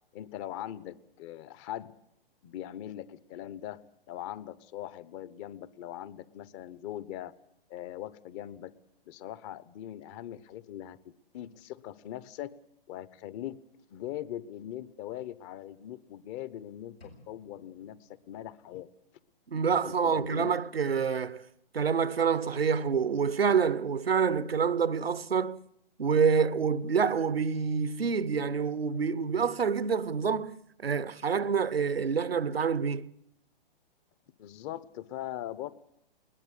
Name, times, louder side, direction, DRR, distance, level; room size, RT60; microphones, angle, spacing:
voice 1, 0.1-1.9 2.4-3.8 4.1-7.3 7.7-8.7 9.1-12.6 12.9-13.6 13.9-18.9 19.8-20.6 34.4-35.7, left 12 dB, 35° left, 1.0 m, -41 dB
sound 1, 17.0-19.0, left 1 dB, 90° left, 7.4 m, -58 dB
voice 2, 19.5-21.5 21.7-25.7 26.0-30.6 30.8-33.1, right 6 dB, 90° right, 0.9 m, -27 dB
21.0 x 18.5 x 8.2 m
figure-of-eight pair, 120°, 29 cm